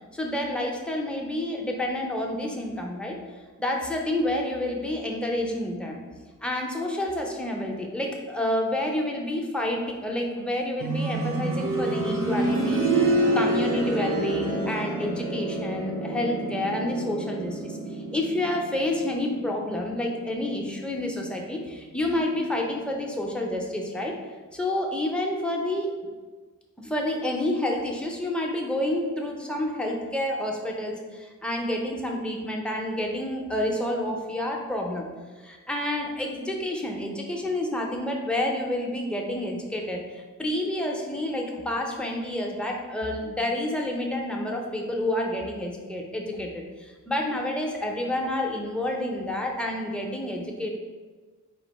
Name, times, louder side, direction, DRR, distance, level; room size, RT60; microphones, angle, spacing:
voice 1, 0.1-3.2 3.6-6.0 6.4-24.1 24.5-26.0 26.8-50.7, left 1 dB, 5° left, 0 dB, 0.5 m, -29 dB
sound 1, 10.8-21.6 22.9-23.0, right 2 dB, 90° right, 0.7 m, -28 dB
4.3 x 2.5 x 4.0 m, 1.4 s
wide cardioid pair, 145°, 32 cm